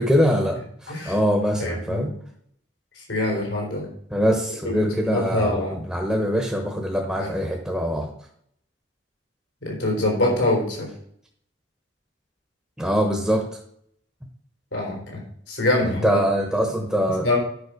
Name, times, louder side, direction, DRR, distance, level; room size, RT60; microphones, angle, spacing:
voice 1, 0.0-2.1 4.1-8.1 12.8-13.6 15.8-17.4, equal, 5° right, 1 dB, 1.1 m, -23 dB
voice 2, 1.6-2.1 3.0-3.9 4.6-5.8 7.2-7.3 9.6-10.9 14.7-15.2 15.5-16.2 17.2-17.4, left 2 dB, 80° left, -2 dB, 3.8 m, -24 dB
9.7 x 5.6 x 5.1 m, 0.67 s
head